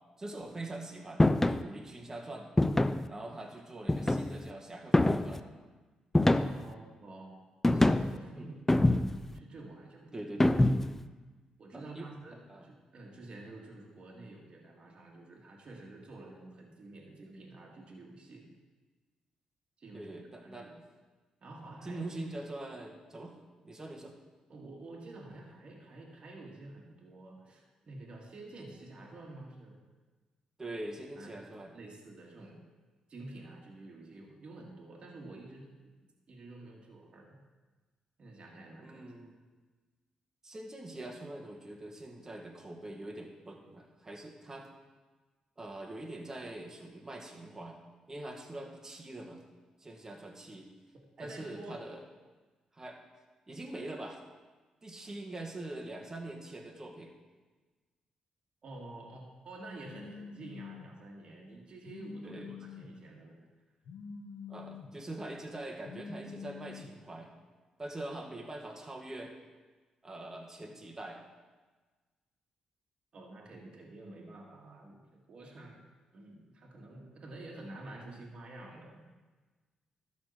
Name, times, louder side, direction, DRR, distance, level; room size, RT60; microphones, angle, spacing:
voice 1, 0.0-2.5 3.1-5.4 8.3-8.6 10.1-10.6 11.7-12.1 12.5-12.7 19.9-20.9 21.8-23.3 23.6-24.2 30.6-31.8 38.8-39.3 40.4-44.7 45.6-47.8 48.1-49.4 49.8-50.7 51.2-52.0 52.7-53.0 53.5-54.2 54.8-57.1 62.2-62.5 64.5-67.3 67.8-69.3 70.0-71.2, right 2 dB, 25° right, 0 dB, 1.9 m, -43 dB
sound 1, 1.2-1.6 2.6-3.1 3.9-4.4 4.9-5.4 6.1-6.7 7.6-8.2 8.7-9.3 10.4-11.0, left 1 dB, 15° left, 0.4 m, -25 dB
voice 2, 6.3-7.3 7.7-10.2 11.6-18.5 19.8-20.1 20.4-20.7 21.4-22.1 24.5-29.8 31.2-31.5 31.7-32.6 33.1-35.9 36.3-37.4 38.2-39.0 51.2-51.8 58.6-63.5 73.1-75.9 76.1-79.0, right 2 dB, 55° right, -1 dB, 2.0 m, -49 dB
Telephone, 59.8-60.9 61.8-62.9 63.8-64.9 65.8-66.9, left 5 dB, 80° left, 1.3 m, -46 dB
12.5 x 4.3 x 6.7 m, 1.3 s
cardioid pair, 70°, 2 cm